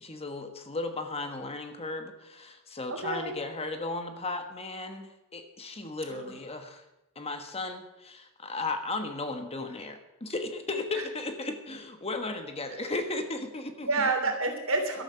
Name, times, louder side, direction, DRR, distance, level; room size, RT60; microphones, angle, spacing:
voice 1, 0.0-6.8 7.1-13.9, left 2 dB, 25° left, 7 dB, 1.2 m, -35 dB
voice 2, 2.9-3.3 6.1-6.3 11.0-11.1 13.8-15.0, right 3 dB, 65° right, 4 dB, 3.0 m, -29 dB
13.0 x 12.5 x 5.7 m, 0.94 s
head